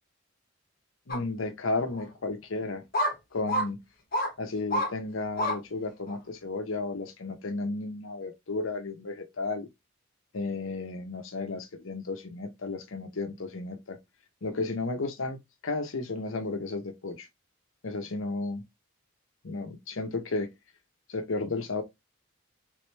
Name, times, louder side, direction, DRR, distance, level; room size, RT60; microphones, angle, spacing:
voice 1, 1.1-2.8 3.3-3.8 4.4-9.7 10.3-14.0 14.4-17.3 17.8-18.6 19.4-20.5 21.1-21.8, left 3 dB, 75° left, 0.8 m, -33 dB
sound 1, 1.1-1.2 1.9-2.0 2.9-3.1 3.5-3.7 4.1-4.3 4.7-4.9 5.4-5.6 6.1-6.2, equal, 45° left, 1.0 m, -27 dB
3.5 x 3.2 x 3.2 m
head